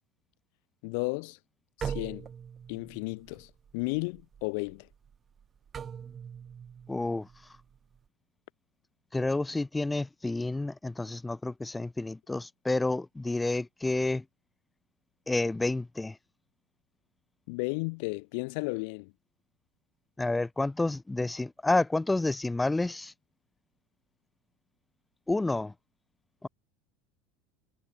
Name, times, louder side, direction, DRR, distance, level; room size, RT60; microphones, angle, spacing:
voice 1, 0.8-1.4 1.8-2.3 2.7-4.9 17.5-19.1, left 32 dB, 55° left, 0.3 m, -33 dB
sound 1, 1.8-8.1, right 7 dB, 30° right, 2.1 m, -42 dB
voice 2, 6.9-7.3 9.1-14.2 15.3-16.2 20.2-23.1 25.3-25.7 26.4-26.5, left 2 dB, 10° left, 0.6 m, -29 dB
figure-of-eight pair, 75°, 0 cm